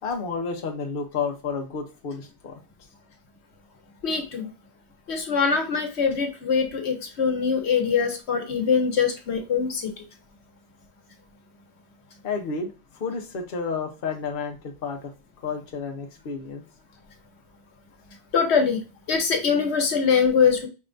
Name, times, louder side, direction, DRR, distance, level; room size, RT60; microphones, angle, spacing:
voice 1, 0.0-2.6 12.2-15.1 15.4-16.6, left 5 dB, 55° left, 2 dB, 0.9 m, -31 dB
voice 2, 4.0-4.5 5.1-10.0 18.3-18.8 19.1-20.7, left 6 dB, 75° left, 4 dB, 1.3 m, -23 dB
5.5 x 3.3 x 2.5 m, 0.30 s
omnidirectional pair, 1.1 m